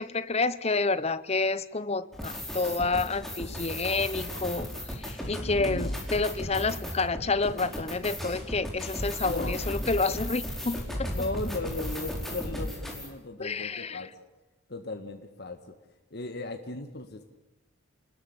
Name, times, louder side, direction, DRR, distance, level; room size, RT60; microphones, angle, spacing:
voice 1, 0.0-11.1 13.4-14.0, left 3 dB, 30° left, 15 dB, 0.8 m, -29 dB
sound 1, 2.1-13.1, equal, ahead, 4.6 m, -35 dB
sound 2, 3.0-3.8 6.9-7.9 11.1-12.0, right 1 dB, 55° right, 2.5 m, -46 dB
voice 2, 5.4-6.0 7.7-7.8 9.2-9.6 11.1-14.1 14.7-15.6 16.1-17.2, left 2 dB, 55° left, 5 dB, 1.7 m, -37 dB
29.5 x 20.5 x 8.0 m, 1.1 s
head